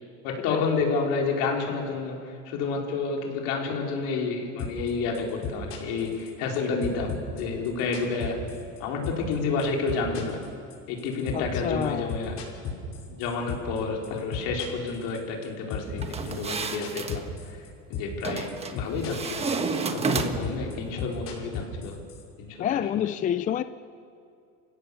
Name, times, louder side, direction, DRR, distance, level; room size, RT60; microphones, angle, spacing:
voice 1, 0.2-8.4 8.8-10.4 10.9-12.3 13.1-17.2 17.6-21.9 22.4-22.8, left 4 dB, 75° left, 0 dB, 4.4 m, -30 dB
sound 1, 4.6-4.9 5.1-6.6 6.8-8.8 9.0-9.3 9.6-13.8 14.0-15.4 15.7-17.7 17.9-18.2 18.5-19.3 19.6-22.2, left 7 dB, 60° left, 5.7 m, -34 dB
voice 2, 11.3-12.1 22.6-23.6, left 9 dB, 25° left, 13 dB, 0.4 m, -28 dB
sound 2, 16.0-17.2 18.2-18.8 19.1-20.6, right 4 dB, 20° right, 1.4 m, -30 dB
29.0 x 16.5 x 6.9 m, 2.4 s
cardioid pair, 145°, 31 cm